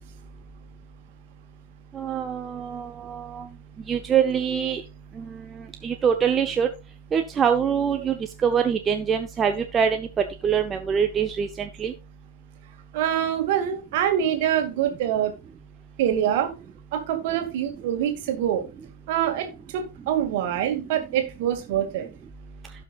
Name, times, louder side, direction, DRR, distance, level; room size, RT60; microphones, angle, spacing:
voice 1, 1.9-3.5 3.9-4.8 5.2-5.4 5.8-6.7 7.1-10.1 10.4-11.9, right 7 dB, 20° right, 6 dB, 0.9 m, -24 dB
voice 2, 12.9-15.3 16.0-16.5 16.9-18.7 19.1-22.1, right 10 dB, 50° right, 5 dB, 2.2 m, -25 dB
17.0 x 5.8 x 2.5 m, 0.28 s
figure-of-eight pair, 90°, 0 cm